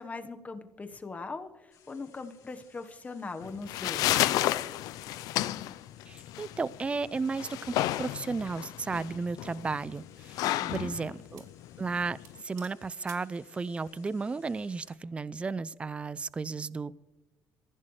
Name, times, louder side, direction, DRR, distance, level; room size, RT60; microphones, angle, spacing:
voice 1, 0.0-4.1 10.4-10.9, left 3 dB, 25° left, 8 dB, 1.2 m, -40 dB
sound 1, 1.7-15.0, left 8 dB, 60° left, 4.0 m, -63 dB
sound 2, 3.4-12.4, left 15 dB, 80° left, 0.5 m, -32 dB
voice 2, 6.1-11.4 11.8-12.2 12.4-17.0, right 4 dB, 20° right, 19 dB, 0.4 m, -34 dB
sound 3, 8.7-9.0 9.7-10.9 11.4-11.6 11.9-12.0 12.2-13.4, right 7 dB, 65° right, 2.4 m, -54 dB
23.0 x 15.5 x 3.2 m, 1.0 s
cardioid pair, 115°, 6 cm